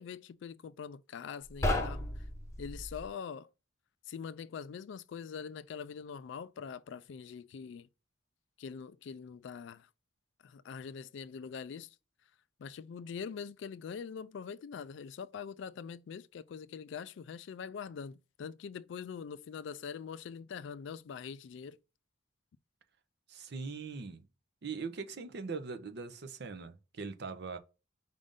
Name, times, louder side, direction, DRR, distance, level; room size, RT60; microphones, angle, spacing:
voice 1, 0.0-2.2 2.6-3.5 4.1-7.9 8.6-9.9 10.4-12.0 12.6-21.8, left 6 dB, 60° left, 0.3 m, -43 dB
sound 1, 1.4-3.1, left 1 dB, 15° left, 0.7 m, -34 dB
voice 2, 23.3-24.2 24.6-27.6, right 4 dB, 55° right, 0.6 m, -41 dB
5.1 x 2.5 x 3.5 m
head